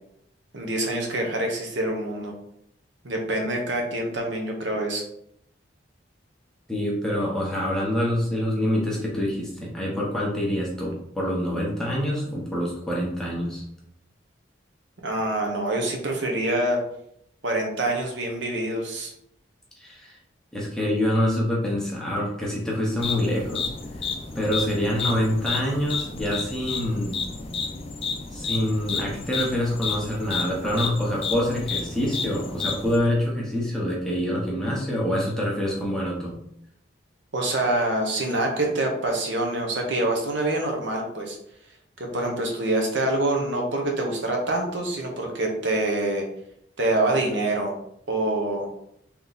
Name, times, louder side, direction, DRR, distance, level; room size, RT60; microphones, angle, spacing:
voice 1, 0.5-2.3 3.0-5.0 15.0-16.8 17.4-19.1 37.3-41.4 42.0-46.3 46.8-47.7 48.1-48.7, right 1 dB, 65° right, 1 dB, 0.9 m, -26 dB
voice 2, 6.7-13.6 19.8-20.2 20.5-23.7 24.3-27.2 28.3-36.3, equal, 5° left, -4 dB, 0.9 m, -26 dB
sound 1, 23.0-33.0, left 4 dB, 30° left, 0.4 m, -31 dB
3.5 x 3.0 x 4.0 m, 0.74 s
head